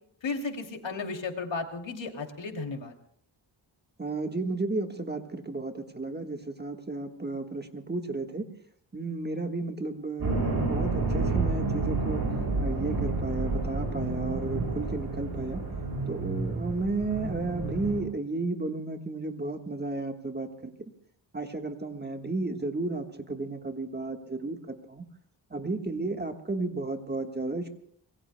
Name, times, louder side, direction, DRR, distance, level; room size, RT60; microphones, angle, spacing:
voice 1, 0.2-2.9, left 4 dB, 75° left, 3 dB, 2.9 m, -34 dB
voice 2, 4.0-8.5 8.9-12.2 12.6-15.6 16.1-20.7 21.3-25.0 25.5-27.7, right 3 dB, 20° right, 5 dB, 1.5 m, -33 dB
sound 1, 10.2-18.0, right 3 dB, 50° right, 6.9 m, -30 dB
26.0 x 22.0 x 2.2 m, 0.66 s
wide cardioid pair, 100°, 46 cm